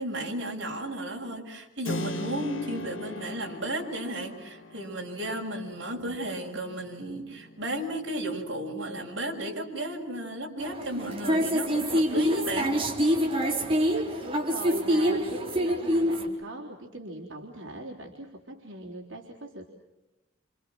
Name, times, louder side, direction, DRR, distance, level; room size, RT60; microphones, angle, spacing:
voice 1, 0.0-12.8, right 1 dB, 65° right, 0 dB, 6.9 m, -34 dB
Keyboard (musical), 1.8-10.4, left 1 dB, 75° left, 1.9 m, -41 dB
voice 2, 2.6-3.0 5.9-6.2 14.2-19.7, right 1 dB, 80° right, -2 dB, 3.6 m, -41 dB
sound 1, 10.6-16.3, equal, 30° right, 3.8 m, -26 dB
29.0 x 28.0 x 6.2 m, 1.0 s
head